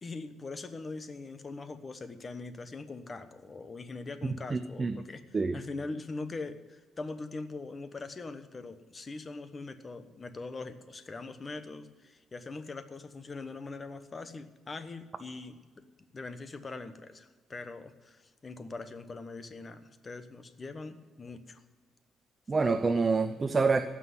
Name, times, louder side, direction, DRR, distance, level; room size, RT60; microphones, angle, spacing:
voice 1, 0.0-15.8 16.1-21.6, left 3 dB, 25° left, 10 dB, 1.0 m, -42 dB
voice 2, 4.5-5.0 5.3-5.6 22.5-23.8, right 4 dB, 25° right, 8 dB, 0.7 m, -27 dB
15.5 x 6.2 x 9.6 m, 1.4 s
cardioid pair, 130°, 0 cm